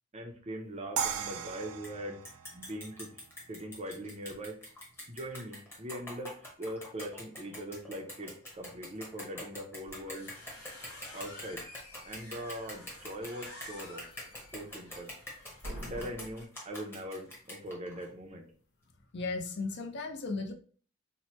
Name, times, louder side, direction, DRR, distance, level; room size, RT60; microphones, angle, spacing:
voice 1, 0.1-2.2 2.5-3.1 3.5-4.6 5.1-10.3 11.1-11.6 12.1-14.0 14.5-15.1 15.8-18.4, equal, 30° right, 4 dB, 0.5 m, -41 dB
sound 1, 1.0-4.0, right 7 dB, 80° right, 0.4 m, -38 dB
sound 2, 1.8-1.9 2.2-18.1, left 1 dB, 10° left, 0.8 m, -45 dB
sound 3, 9.9-16.4, equal, 90° left, 1.6 m, -48 dB
voice 2, 19.1-20.5, left 3 dB, 50° left, 5 dB, 0.5 m, -35 dB
3.0 x 2.1 x 4.1 m, 0.43 s
head